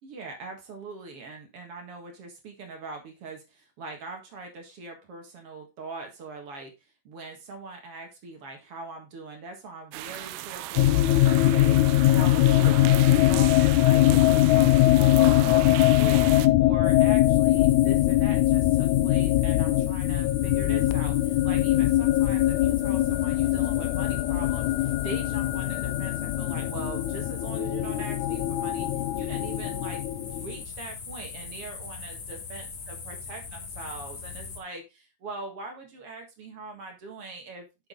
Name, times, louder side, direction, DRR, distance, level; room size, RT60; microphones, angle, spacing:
voice 1, 0.0-6.7 7.0-12.8 13.1-16.3 16.6-28.9 29.1-32.7 33.1-37.9, right 3 dB, 50° right, 3 dB, 2.3 m, -42 dB
sound 1, 9.9-16.5, right 15 dB, 80° right, 2.1 m, -36 dB
sound 2, 10.8-30.6, left 15 dB, 80° left, 1.8 m, -22 dB
sound 3, 16.8-34.6, left 5 dB, 55° left, 2.8 m, -40 dB
7.6 x 6.9 x 3.8 m, 0.26 s
omnidirectional pair, 3.8 m